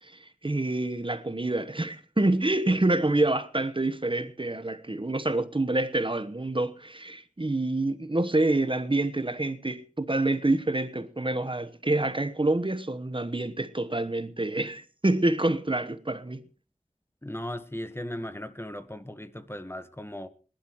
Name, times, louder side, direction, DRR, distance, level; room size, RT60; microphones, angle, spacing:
voice 1, 0.0-16.5, right 2 dB, 45° right, 1.1 m, -27 dB
voice 2, 17.2-20.3, left 1 dB, 20° left, 1.5 m, -37 dB
20.0 x 12.0 x 4.7 m
wide cardioid pair, 40°, 12 cm